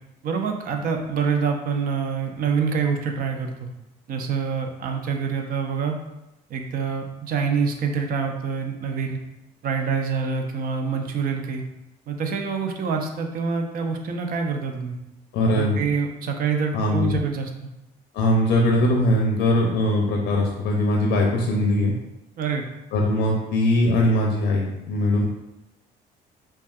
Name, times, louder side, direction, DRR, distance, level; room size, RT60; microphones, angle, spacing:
voice 1, 0.2-3.7 4.1-6.0 6.5-9.2 9.6-11.6 12.1-15.0 15.4-17.5 22.4-22.7, right 5 dB, 60° right, 3 dB, 0.6 m, -26 dB
voice 2, 15.3-15.8 16.7-17.1 18.1-21.9 22.9-25.3, left 1 dB, 80° left, 0 dB, 0.6 m, -21 dB
5.4 x 2.4 x 2.4 m, 0.91 s
cardioid pair, 110°, 17 cm